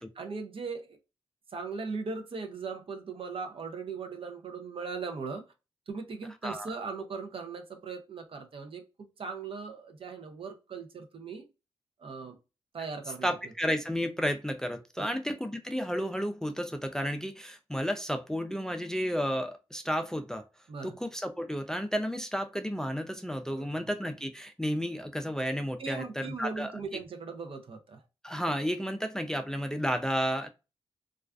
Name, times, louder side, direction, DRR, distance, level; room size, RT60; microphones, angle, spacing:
voice 1, 0.2-1.0 1.5-5.4 5.9-8.8 9.2-11.5 12.0-12.4 12.7-13.3 15.0-15.1 20.7-21.0 23.5-23.8 25.8-28.0, right 4 dB, 60° right, 0.5 m, -39 dB
voice 2, 6.4-6.7 13.2-20.4 20.8-26.7 28.2-30.5, equal, 5° left, 0.3 m, -32 dB
2.3 x 2.2 x 2.3 m
cardioid pair, 55°, 11 cm